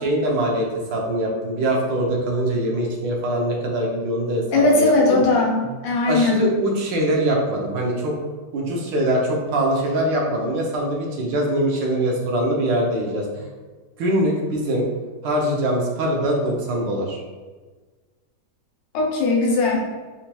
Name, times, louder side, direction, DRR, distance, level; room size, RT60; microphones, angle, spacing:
voice 1, 0.0-5.2 6.1-8.2 8.5-13.5 14.0-14.9 15.2-17.2, right 1 dB, 85° right, -1 dB, 1.4 m, -23 dB
voice 2, 4.5-6.5 18.9-19.8, left 2 dB, 90° left, -1 dB, 1.4 m, -19 dB
4.2 x 2.2 x 2.8 m, 1.3 s
omnidirectional pair, 1.9 m